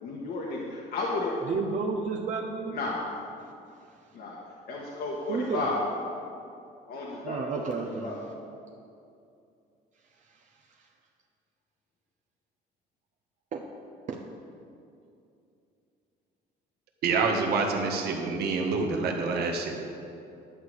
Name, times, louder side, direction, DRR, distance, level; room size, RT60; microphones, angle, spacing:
voice 1, 0.0-1.4 2.7-3.1 4.1-4.4 4.7-5.8 6.9-7.6 8.0-8.3, left 3 dB, 65° left, -3 dB, 1.5 m, -33 dB
voice 2, 1.5-2.8 5.3-5.7 7.2-8.1 10.3-10.4 10.7-10.9 13.5-13.7 14.1-14.2, right 5 dB, 45° right, 1 dB, 0.8 m, -32 dB
voice 3, 17.0-19.9, right 4 dB, 70° right, 1 dB, 1.6 m, -27 dB
11.0 x 4.8 x 8.1 m, 2.6 s
cardioid pair, 110°, 17 cm